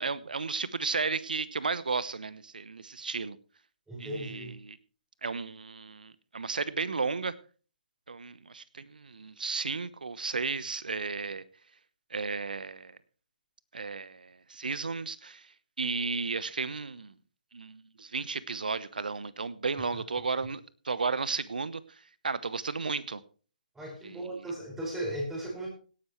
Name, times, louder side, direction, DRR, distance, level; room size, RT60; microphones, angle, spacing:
voice 1, 0.0-3.4 4.0-4.8 5.2-7.3 8.1-11.4 12.1-13.0 13.7-15.5 15.8-17.1 17.5-22.0 22.2-23.2 24.0-24.4, right 4 dB, 75° right, 17 dB, 1.0 m, -34 dB
voice 2, 3.9-4.5 19.9-20.0 23.7-25.7, right 1 dB, 5° right, -2 dB, 5.4 m, -36 dB
17.5 x 10.5 x 3.2 m, 0.37 s
figure-of-eight pair, 145°, 5 cm